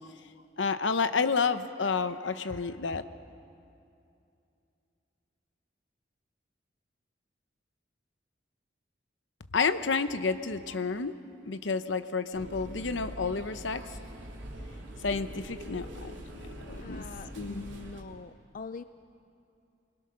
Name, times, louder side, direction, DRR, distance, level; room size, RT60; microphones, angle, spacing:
voice 1, 0.6-3.0 9.5-11.1 11.5-13.8 15.0-17.0 17.3-17.6, left 4 dB, 80° left, 11 dB, 0.9 m, -30 dB
sound 1, 12.3-18.0, equal, 80° right, 2.9 m, -43 dB
voice 2, 16.8-18.8, left 4 dB, 45° left, 12 dB, 0.4 m, -43 dB
26.0 x 21.0 x 6.3 m, 2.6 s
head